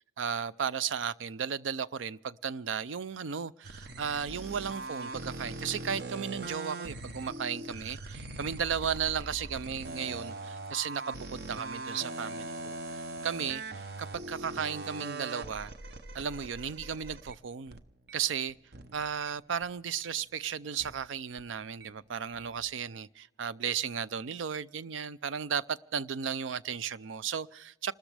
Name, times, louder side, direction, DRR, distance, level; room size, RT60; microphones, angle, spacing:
voice 1, 0.2-15.7 16.1-17.8 18.1-18.6 18.9-27.9, right 7 dB, 85° right, 0.5 m, -35 dB
sound 1, 3.6-19.3 19.6-21.9 22.2-22.7, right 2 dB, 55° right, 0.8 m, -41 dB
27.5 x 13.5 x 3.4 m
head